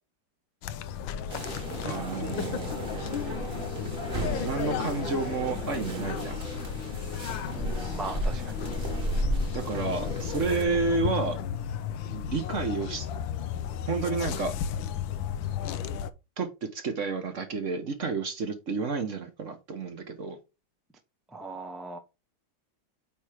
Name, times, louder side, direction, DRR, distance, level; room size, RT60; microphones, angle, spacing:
sound 1, 0.6-16.1, left 9 dB, 90° left, 1.4 m, -34 dB
sound 2, 1.3-10.6, right 1 dB, 30° right, 1.5 m, -34 dB
voice 1, 1.8-2.7 4.4-6.4 9.5-11.4 12.1-13.1 13.9-14.5 16.4-16.5 16.7-20.4, right 4 dB, 50° right, 1.2 m, -30 dB
voice 2, 8.0-8.5 21.3-22.0, right 3 dB, ahead, 0.5 m, -38 dB
8.7 x 3.1 x 5.0 m
omnidirectional pair, 2.1 m